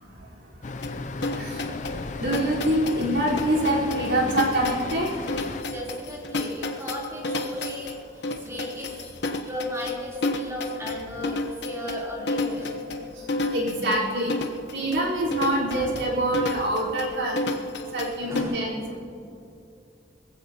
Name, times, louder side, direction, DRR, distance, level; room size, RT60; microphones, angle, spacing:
Traffic noise roadway noise, 0.6-5.6, left 3 dB, 40° left, 0.5 m, -35 dB
sound 1, 0.8-18.4, left 2 dB, 75° left, 1.0 m, -31 dB
voice 1, 1.3-5.1 13.1-17.4 17.9-19.0, right 1 dB, 90° right, -5 dB, 4.3 m, -26 dB
voice 2, 5.7-13.2 18.2-18.7, equal, 15° right, -5 dB, 3.5 m, -36 dB
21.0 x 15.5 x 2.9 m, 2.7 s
head